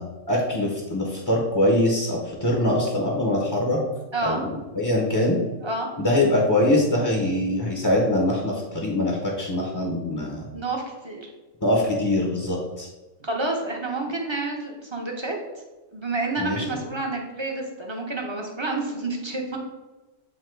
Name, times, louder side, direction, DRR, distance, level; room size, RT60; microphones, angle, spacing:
voice 1, 0.0-3.8 4.2-5.4 6.0-10.5 11.6-12.9 16.4-16.8, left 1 dB, 20° left, -2 dB, 0.8 m, -23 dB
voice 2, 10.5-11.3 13.2-15.4 15.9-19.6, right 2 dB, 25° right, 0 dB, 0.8 m, -29 dB
8.0 x 2.9 x 4.5 m, 1.2 s
omnidirectional pair, 1.3 m